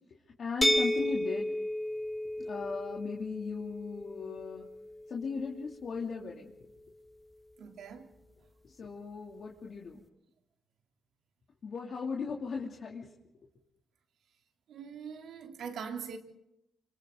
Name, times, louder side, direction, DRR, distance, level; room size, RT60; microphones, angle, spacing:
voice 1, 0.4-1.5 2.4-4.7 5.1-6.5 8.6-10.0 11.6-13.1, left 5 dB, 55° left, 2.8 m, -37 dB
sound 1, 0.6-6.4, equal, ahead, 1.2 m, -33 dB
voice 2, 7.6-8.1 14.7-16.2, right 6 dB, 75° right, 3.2 m, -42 dB
29.5 x 26.0 x 3.9 m
cardioid pair, 105°, 0 cm